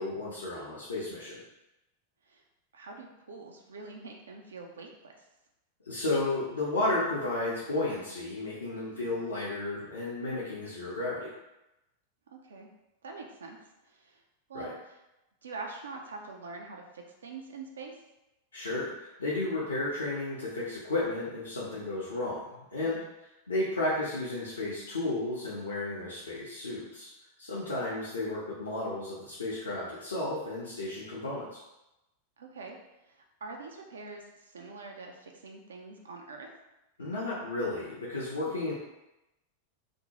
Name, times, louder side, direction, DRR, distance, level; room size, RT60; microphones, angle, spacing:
voice 1, 0.0-1.4 5.9-11.3 14.5-14.7 18.5-22.4 22.7-23.0 23.5-27.1 27.4-31.6 37.0-38.7, left 2 dB, 75° left, -8 dB, 0.5 m, -33 dB
voice 2, 2.7-5.2 8.7-9.2 12.4-12.7 13.0-13.6 13.8-14.2 14.5-15.0 15.4-18.0 22.8-23.1 32.4-32.8 33.1-36.5 38.4-38.5, right 3 dB, 70° right, 2 dB, 0.4 m, -45 dB
2.6 x 2.1 x 2.8 m, 0.94 s
figure-of-eight pair, 90°, 0 cm